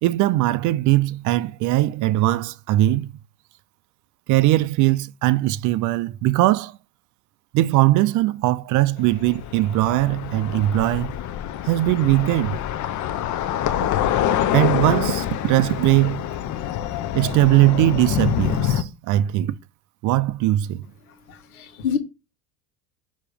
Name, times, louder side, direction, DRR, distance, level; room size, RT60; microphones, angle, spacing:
voice 1, 0.0-3.1 4.3-6.8 7.5-11.1 11.7-12.6 14.5-16.3 17.1-19.6 20.0-20.9, right 16 dB, 45° right, 0.4 m, -20 dB
sound 1, 9.0-18.8, left 10 dB, 40° left, 0.7 m, -26 dB
voice 2, 21.3-22.0, left 7 dB, 85° left, 1.3 m, -27 dB
6.8 x 3.0 x 5.0 m
hypercardioid pair, 85°, 43 cm